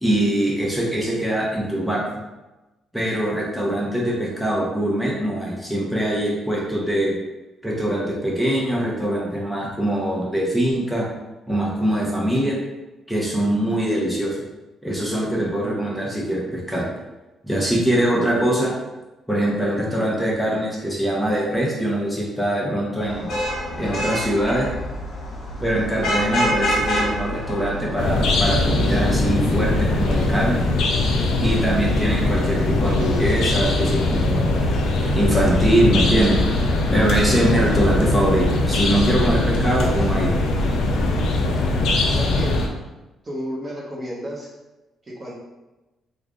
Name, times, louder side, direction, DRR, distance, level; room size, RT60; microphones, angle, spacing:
voice 1, 0.0-2.0 2.9-7.2 7.6-11.1 11.5-12.6 13.1-14.4 14.8-16.9 17.4-18.7 19.3-23.3 23.8-24.7 25.6-30.6 31.4-34.7 35.1-36.4 36.9-40.3, right 1 dB, 5° left, -4 dB, 0.9 m, -22 dB
Vehicle horn car horn honking / Traffic noise roadway noise, 23.1-28.3, equal, 60° left, 1.1 m, -26 dB
sound 1, 28.0-42.7, left 2 dB, 80° left, 0.5 m, -21 dB
voice 2, 42.1-42.6 43.2-44.5 45.0-45.3, equal, 30° right, -4 dB, 0.9 m, -32 dB
3.3 x 2.2 x 3.7 m, 1.1 s
cardioid pair, 90°, 0 cm